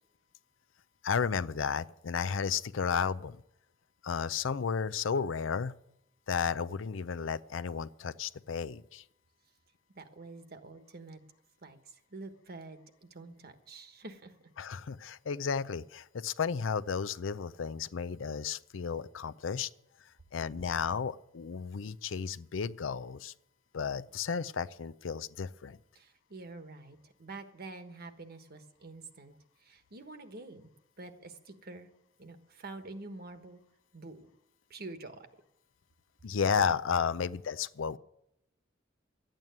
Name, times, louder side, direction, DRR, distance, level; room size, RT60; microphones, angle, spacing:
voice 1, 1.0-3.4 4.0-5.7 6.3-9.0 14.6-19.7 20.3-23.3 23.7-25.8 36.2-38.0, left 6 dB, 75° left, 14 dB, 0.5 m, -33 dB
voice 2, 10.0-11.2 11.6-14.3 25.9-30.7 31.0-31.9 32.2-33.6 33.9-34.3 34.7-35.3, right 2 dB, 55° right, 8 dB, 1.4 m, -47 dB
12.5 x 9.0 x 9.2 m, 0.80 s
head